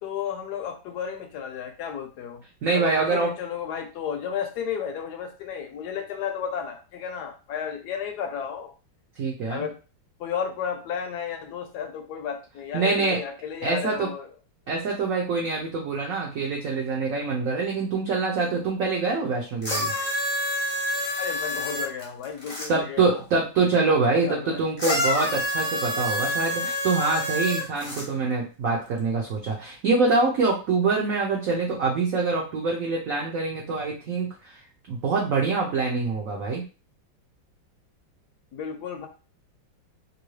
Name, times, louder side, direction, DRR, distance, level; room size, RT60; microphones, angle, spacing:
voice 1, 0.0-2.4 2.7-8.7 9.5-9.8 10.2-14.3 21.2-23.2 23.9-24.0 24.3-24.6 38.5-39.1, left 7 dB, 75° left, 5 dB, 1.0 m, -33 dB
voice 2, 2.6-3.3 9.2-9.7 12.7-13.2 13.6-14.1 14.7-19.9 22.7-34.6 34.9-36.6, right 4 dB, 70° right, -1 dB, 0.8 m, -25 dB
sound 1, 19.6-22.7 24.8-28.1 29.0-29.1, left 1 dB, 30° left, 0.4 m, -27 dB
3.0 x 2.6 x 3.1 m, 0.34 s
omnidirectional pair, 2.1 m